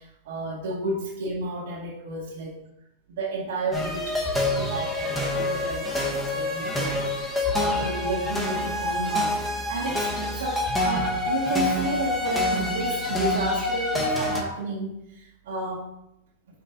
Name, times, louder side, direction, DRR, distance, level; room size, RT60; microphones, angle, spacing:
voice 1, 0.0-2.6 3.1-15.9, right 2 dB, 75° right, -3 dB, 1.3 m, -32 dB
sound 1, 3.7-14.4, left 2 dB, 5° left, 1.0 m, -27 dB
5.4 x 3.9 x 5.8 m, 0.83 s
supercardioid pair, 170°, 0 cm